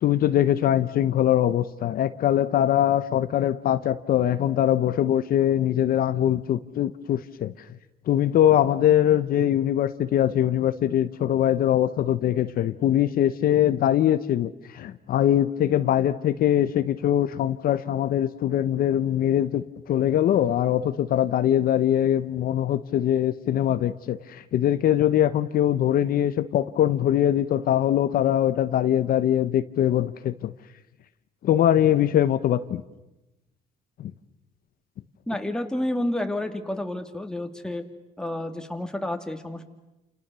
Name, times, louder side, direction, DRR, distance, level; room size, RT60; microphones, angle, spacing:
voice 1, 0.0-7.5 8.1-30.5 31.4-32.8 34.0-34.1, left 11 dB, 60° left, 11 dB, 1.0 m, -22 dB
voice 2, 35.3-37.8 38.2-39.7, left 1 dB, 5° left, 5 dB, 2.5 m, -30 dB
29.0 x 29.0 x 6.9 m, 1.0 s
cardioid pair, 110°, 17 cm